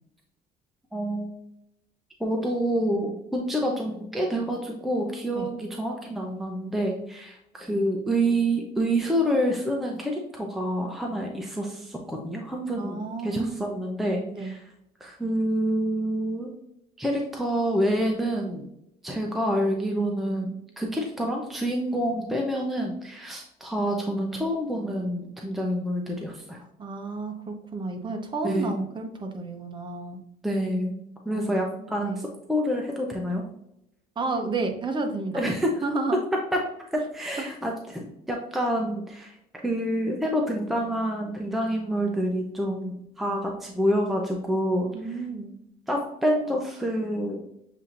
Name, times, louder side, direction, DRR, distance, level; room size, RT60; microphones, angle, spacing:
voice 1, 0.9-1.3 2.2-14.7 15.0-16.5 17.0-18.6 19.0-26.6 28.4-28.8 30.4-31.0 31.3-33.4 35.3-35.8 36.9-39.4 39.6-45.2 45.9-47.4, equal, ahead, 0 dB, 0.6 m, -27 dB
voice 2, 12.8-13.8 14.3-14.5 26.8-30.2 31.3-31.5 31.8-32.2 34.2-35.5 35.8-36.2 44.9-45.5, right 3 dB, 30° right, 4 dB, 0.9 m, -31 dB
7.3 x 2.8 x 2.5 m, 0.78 s
cardioid pair, 110°, 17 cm